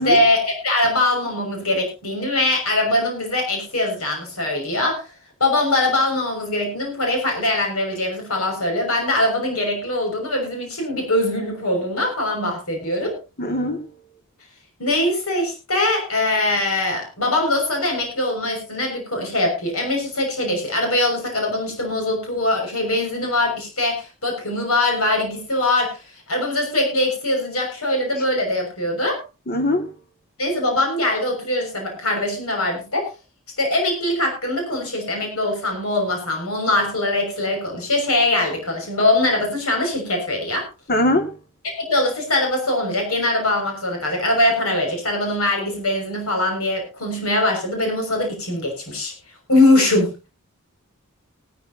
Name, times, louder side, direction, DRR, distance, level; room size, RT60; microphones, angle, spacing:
voice 1, 0.0-5.1 5.4-13.2 14.8-29.2 30.4-33.1 33.6-40.7 41.9-49.1 49.5-50.1, left 1 dB, 75° left, 2 dB, 6.3 m, -22 dB
voice 2, 13.4-13.8 29.5-29.8 40.9-41.3, left 1 dB, 45° left, 6 dB, 2.2 m, -20 dB
19.0 x 13.5 x 2.8 m, 0.30 s
head